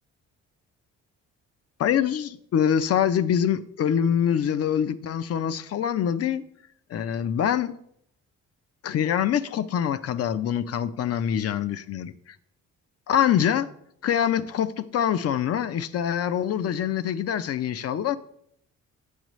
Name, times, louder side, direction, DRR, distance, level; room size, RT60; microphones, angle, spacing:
voice 1, 1.8-6.4 6.9-7.7 8.8-12.1 13.1-13.7 14.0-18.2, left 9 dB, 55° left, 0.5 m, -24 dB
7.9 x 7.9 x 3.1 m
cardioid pair, 90°, 30 cm